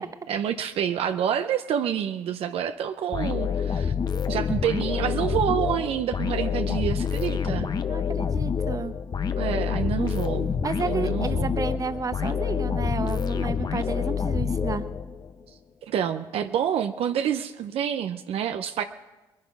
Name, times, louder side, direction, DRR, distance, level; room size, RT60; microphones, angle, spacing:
voice 1, 0.0-3.9 4.3-7.7 9.4-10.5 10.9-11.6 15.8-18.8, right 9 dB, 70° right, 8 dB, 0.7 m, -28 dB
sound 1, 3.1-15.3, left 7 dB, 40° left, 1.0 m, -27 dB
voice 2, 7.9-8.9 10.6-14.8, right 4 dB, 35° right, 10 dB, 1.0 m, -31 dB
20.5 x 10.5 x 5.3 m, 1.1 s
supercardioid pair, 70°, 10 cm